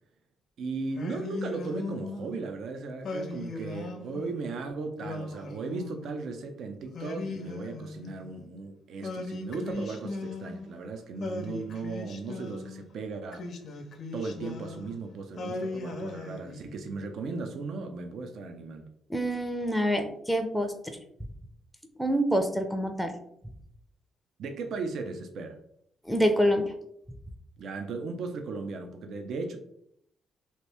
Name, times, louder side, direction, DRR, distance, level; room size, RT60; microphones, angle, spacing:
voice 1, 0.6-13.5 14.1-18.9 24.4-25.5 27.6-29.6, right 3 dB, 70° right, 5 dB, 0.4 m, -36 dB
Singing, 0.9-2.4 3.0-4.4 5.0-6.3 6.9-8.5 9.0-10.8 11.2-12.8 13.3-15.0 15.4-17.0, left 2 dB, 60° left, 0.5 m, -38 dB
voice 2, 19.1-21.0 22.0-23.1 26.1-26.7, equal, ahead, 5 dB, 0.5 m, -26 dB
2.8 x 2.6 x 3.3 m, 0.72 s
cardioid pair, 90°, 0 cm